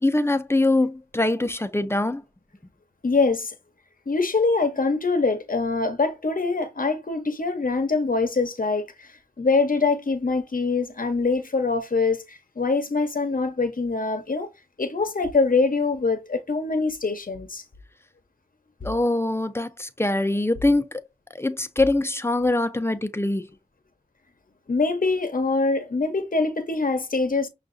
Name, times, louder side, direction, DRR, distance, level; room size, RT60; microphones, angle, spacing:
voice 1, 0.0-2.2 18.8-21.0 21.3-23.5, left 2 dB, 15° left, 0.5 m, -23 dB
voice 2, 3.0-3.5 4.1-9.1 9.4-14.5 14.8-17.6 24.7-27.5, left 3 dB, 70° left, 0.7 m, -24 dB
5.7 x 2.4 x 2.5 m
wide cardioid pair, 40°, 15 cm